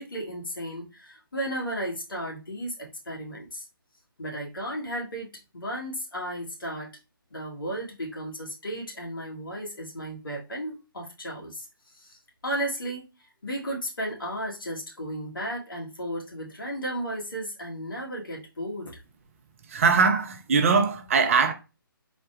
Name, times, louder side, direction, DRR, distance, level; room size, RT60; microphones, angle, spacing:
voice 1, 0.0-3.7 4.2-6.9 7.3-11.7 11.9-12.2 12.4-13.0 13.4-19.0, right 1 dB, 70° left, 1.6 m, -34 dB
voice 2, 19.7-21.5, right 5 dB, 40° right, 0.5 m, -21 dB
4.0 x 2.2 x 4.3 m
figure-of-eight pair, 140°, 12 cm